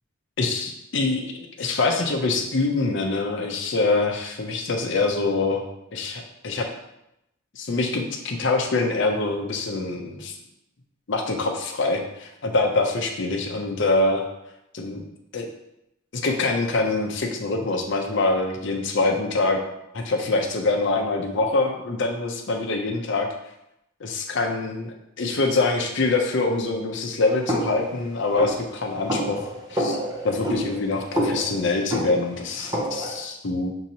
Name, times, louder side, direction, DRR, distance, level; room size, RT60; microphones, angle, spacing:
voice 1, 0.4-5.6 5.9-6.7 7.5-10.3 11.1-14.3 14.7-15.0 15.3-15.5 16.1-19.6 19.9-23.3 24.0-30.0 30.2-33.7, left 3 dB, 60° left, 3 dB, 0.6 m, -24 dB
sound 1, 27.5-33.2, equal, 20° right, 0.6 m, -29 dB
6.1 x 2.9 x 2.8 m, 0.85 s
head